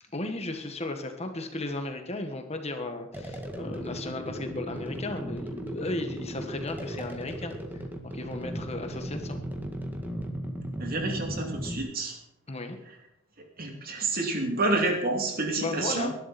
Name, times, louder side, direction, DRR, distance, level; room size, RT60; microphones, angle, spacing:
voice 1, 0.1-9.4 12.5-12.8 15.6-16.2, left 2 dB, 30° left, 6 dB, 1.5 m, -35 dB
sound 1, 3.1-11.8, equal, 10° right, 1.7 m, -36 dB
voice 2, 10.8-12.2 13.6-16.1, right 2 dB, 50° right, 2 dB, 2.9 m, -29 dB
21.0 x 11.0 x 4.3 m, 0.84 s
head